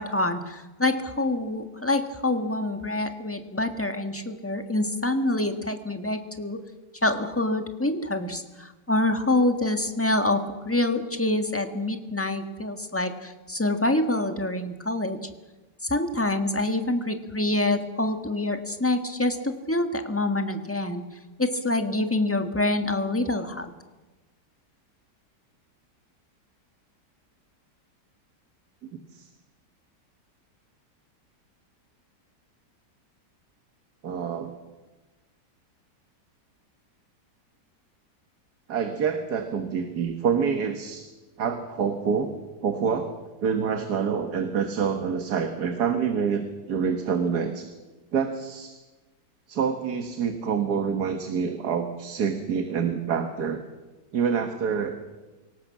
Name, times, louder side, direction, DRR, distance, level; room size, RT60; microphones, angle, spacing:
voice 1, 0.0-6.6 7.0-15.2 15.8-21.0 21.4-23.7, left 2 dB, 10° left, 6 dB, 1.4 m, -26 dB
voice 2, 28.9-29.3 34.0-34.5 38.7-41.1 41.4-42.3 42.6-43.2 43.4-47.7 48.1-48.8 49.5-53.6 54.1-55.0, right 6 dB, 65° right, 7 dB, 1.9 m, -27 dB
24.0 x 18.0 x 7.4 m, 1.2 s
omnidirectional pair, 1.9 m